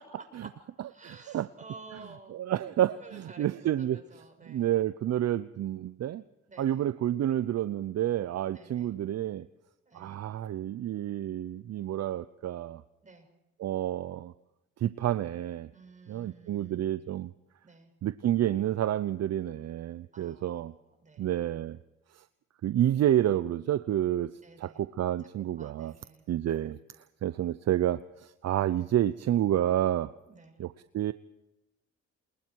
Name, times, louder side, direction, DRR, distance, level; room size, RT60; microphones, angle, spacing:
voice 1, 0.0-2.4 3.0-4.7 6.5-6.9 8.5-8.9 9.9-10.2 13.0-13.3 15.7-16.9 17.6-17.9 20.1-21.3 24.4-24.8 25.6-26.2 30.2-30.6, right 3 dB, 25° right, 5 dB, 6.6 m, -52 dB
voice 2, 1.0-1.5 2.3-4.0 4.5-6.2 6.6-9.5 9.9-12.8 13.6-14.3 14.8-15.7 16.1-17.3 18.0-20.7 21.2-21.8 22.6-24.3 24.6-25.9 26.3-26.8 27.2-30.1 30.6-31.1, right 12 dB, 60° right, 14 dB, 0.7 m, -29 dB
28.5 x 20.5 x 4.7 m, 0.92 s
cardioid pair, 90°, 30 cm